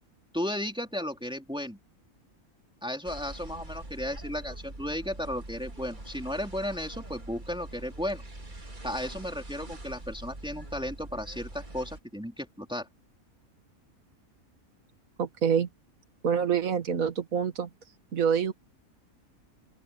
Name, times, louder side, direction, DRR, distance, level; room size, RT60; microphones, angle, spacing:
voice 1, 0.3-1.8 2.8-8.2 8.8-12.9, left 1 dB, 5° right, 3.3 m, -34 dB
sound 1, 3.0-12.0, right 2 dB, 35° right, 2.8 m, -43 dB
voice 2, 15.2-15.7 16.2-17.7 18.1-18.5, right 7 dB, 70° right, 2.0 m, -26 dB
open air
omnidirectional pair, 1.5 m